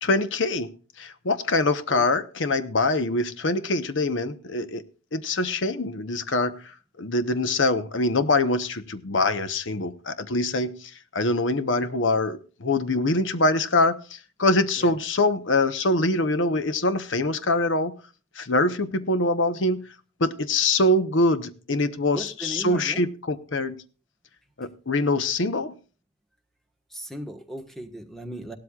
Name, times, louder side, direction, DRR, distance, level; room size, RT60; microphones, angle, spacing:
voice 1, 0.0-0.7 1.0-4.8 5.1-6.5 7.0-17.9 18.4-19.8 20.2-23.8 24.6-25.7, left 2 dB, 80° left, 11 dB, 1.0 m, -24 dB
voice 2, 22.1-23.1 26.9-28.6, right 1 dB, ahead, 6 dB, 1.3 m, -37 dB
17.5 x 12.5 x 2.4 m, 0.36 s
head